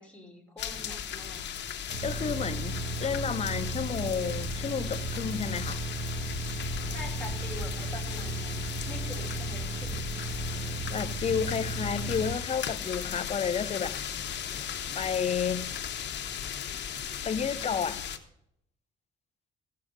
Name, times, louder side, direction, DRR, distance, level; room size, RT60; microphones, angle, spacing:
voice 1, 0.0-1.4 6.8-10.0, left 1 dB, 5° left, 3.0 m, -44 dB
sound 1, 0.6-18.2, left 8 dB, 60° left, 1.0 m, -37 dB
sound 2, 1.9-12.3, right 2 dB, 30° right, 1.3 m, -35 dB
voice 2, 2.0-5.9 10.5-14.0 14.9-15.7 17.2-18.1, left 7 dB, 30° left, 0.6 m, -31 dB
15.0 x 6.6 x 5.1 m
cardioid pair, 90°, 20 cm